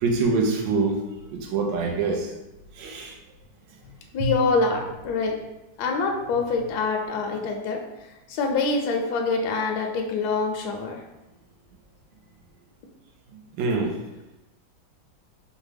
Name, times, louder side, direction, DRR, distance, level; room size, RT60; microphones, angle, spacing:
voice 1, 0.0-1.0 1.3-2.3 2.8-3.1 4.2-4.3 13.6-14.0, right 3 dB, 75° right, 1 dB, 1.3 m, -24 dB
voice 2, 4.1-5.4 5.8-7.8 8.3-11.0, left 4 dB, 70° left, 1 dB, 1.0 m, -25 dB
4.6 x 2.2 x 3.3 m, 0.98 s
omnidirectional pair, 2.0 m